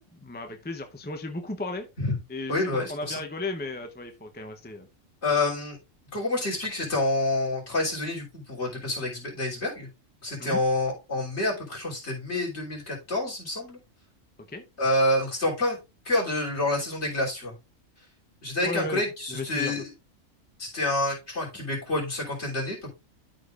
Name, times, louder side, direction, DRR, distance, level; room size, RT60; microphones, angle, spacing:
voice 1, 0.1-1.9 2.3-4.9 10.4-10.6 14.5-14.6 18.6-19.7, left 2 dB, 10° left, 5 dB, 0.6 m, -35 dB
voice 2, 2.5-3.2 5.2-5.8 6.1-9.9 10.2-13.8 14.8-15.8 16.1-17.6 18.4-19.9 20.6-22.9, left 2 dB, 55° left, -4 dB, 3.6 m, -28 dB
12.5 x 5.1 x 2.4 m, 0.26 s
omnidirectional pair, 1.4 m